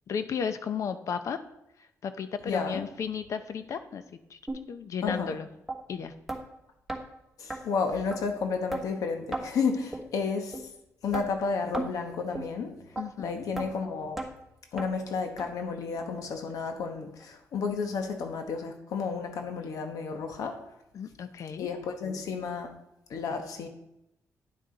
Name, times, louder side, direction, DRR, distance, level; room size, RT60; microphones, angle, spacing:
voice 1, 0.1-1.4 2.0-4.0 4.3-4.4 4.7-5.5 5.9-6.1 13.0-13.5 20.9-21.7, left 7 dB, 65° left, 10 dB, 0.7 m, -34 dB
voice 2, 2.4-2.8 5.0-5.4 7.4-10.6 11.0-12.8 13.2-14.2 14.7-20.6 21.6-22.7 23.1-23.7, left 5 dB, 80° left, 5 dB, 1.2 m, -32 dB
sound 1, 4.5-4.6 5.1-5.2 5.7-5.8 6.3-6.4 6.9-7.0 7.5-7.6 8.1-8.2 8.7-8.8 9.3-9.5 9.9-10.1 10.5-10.6 11.1-11.3 11.7-11.9 12.3-12.5 13.0-13.1 13.6-13.7 14.2-14.3 14.8-14.9 15.4-15.5 16.0-16.1 16.6-16.7 17.2-17.3, right 2 dB, 5° right, 1.3 m, -34 dB
10.0 x 6.5 x 4.0 m, 0.84 s
cardioid pair, 110°, 6 cm